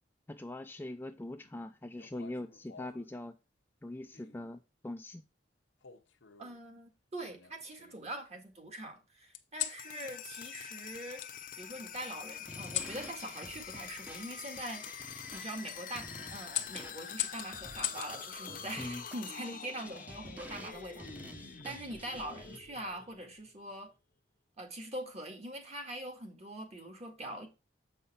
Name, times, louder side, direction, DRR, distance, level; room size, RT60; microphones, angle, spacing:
voice 1, 0.3-3.4 3.8-5.2 18.8-19.0, left 1 dB, 10° left, 0.4 m, -42 dB
sound 1, 2.0-3.1 4.1-4.5 5.8-6.6 7.2-8.1 9.3-9.8 11.2-11.3 12.6-13.0 14.8-14.9 15.5-15.8 16.5-18.1 19.6-20.0, left 13 dB, 90° left, 0.8 m, -40 dB
voice 2, 6.4-11.2 11.6-21.1 21.6-23.9 24.6-27.5, right 1 dB, 35° right, 1.8 m, -43 dB
sound 2, 9.6-23.5, left 8 dB, 50° left, 0.7 m, -46 dB
sound 3, 12.5-22.6, right 1 dB, 10° right, 0.8 m, -51 dB
7.7 x 5.5 x 4.2 m
head